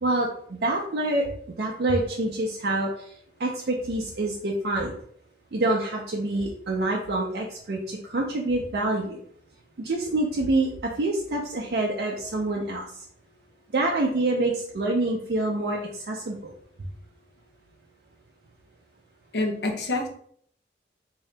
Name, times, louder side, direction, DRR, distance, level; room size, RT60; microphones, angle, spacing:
voice 1, 0.0-1.3 1.6-2.9 3.4-4.9 5.5-9.2 9.8-12.8 13.7-16.5, right 2 dB, 60° right, -1 dB, 0.5 m, -26 dB
voice 2, 19.3-20.1, left 2 dB, 70° left, 2 dB, 0.7 m, -26 dB
3.7 x 2.7 x 3.3 m, 0.63 s
head